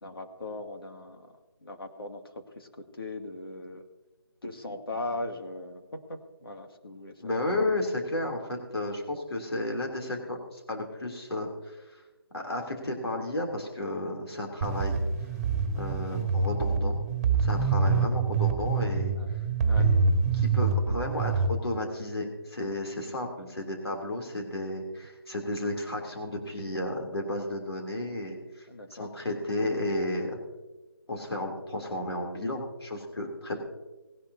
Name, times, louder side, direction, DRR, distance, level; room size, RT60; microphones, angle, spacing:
voice 1, 0.0-1.3 1.6-3.9 4.4-7.1 19.2-19.4 19.7-19.9 28.7-29.1, left 2 dB, 70° left, 4 dB, 2.2 m, -39 dB
voice 2, 7.2-12.0 12.3-15.0 15.8-16.9 17.4-19.1 19.8-19.9 20.3-30.4 31.1-33.6, left 1 dB, 85° left, 1 dB, 3.1 m, -33 dB
sound 1, 14.6-21.5, right 4 dB, 20° right, 2.0 m, -26 dB
19.5 x 11.0 x 2.8 m, 1.2 s
figure-of-eight pair, 165°, 13 cm